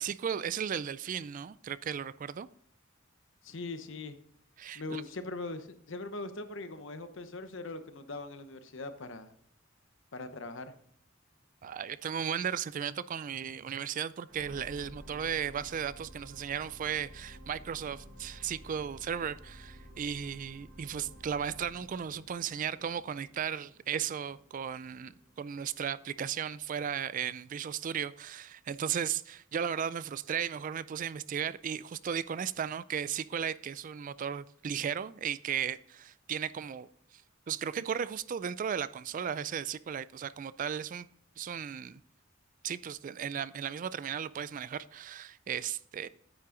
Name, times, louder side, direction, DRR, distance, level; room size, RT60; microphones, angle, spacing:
voice 1, 0.0-2.5 4.6-5.0 11.6-37.2 37.5-41.1 41.4-42.0 42.6-46.1, right 8 dB, 40° right, 0.3 m, -35 dB
voice 2, 3.4-4.2 4.7-9.3 10.1-10.7, left 3 dB, 65° left, 0.9 m, -41 dB
sound 1, 14.3-26.7 27.3-27.4, equal, 80° right, 4.6 m, -53 dB
9.5 x 8.6 x 3.8 m
head